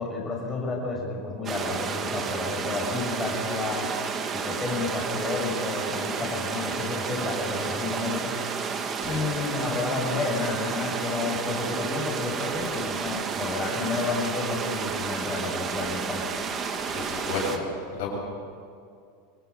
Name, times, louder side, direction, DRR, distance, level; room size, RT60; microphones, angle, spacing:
voice 1, 0.0-3.9 4.3-8.3 9.1-16.3, left 3 dB, 20° left, -2 dB, 6.6 m, -31 dB
sound 1, 1.4-17.6, right 5 dB, 30° right, 2.3 m, -31 dB
voice 2, 16.9-17.7 17.9-18.2, left 4 dB, 70° left, -1 dB, 7.4 m, -32 dB
26.5 x 19.0 x 6.9 m, 2.3 s
supercardioid pair, 115°, 0 cm